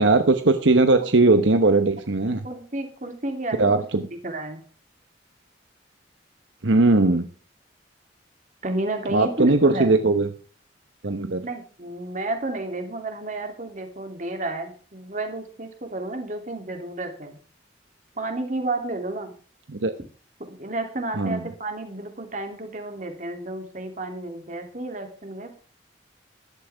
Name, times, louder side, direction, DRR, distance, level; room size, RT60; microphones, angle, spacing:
voice 1, 0.0-2.4 3.6-4.1 6.6-7.3 9.1-10.3 11.0-11.5 19.7-19.9 21.2-21.4, right 3 dB, 80° right, 8 dB, 1.0 m, -19 dB
voice 2, 2.4-4.6 8.6-9.9 11.4-17.4 18.2-19.3 20.5-25.6, right 2 dB, 40° right, 5 dB, 2.9 m, -31 dB
15.0 x 11.5 x 3.5 m, 0.40 s
head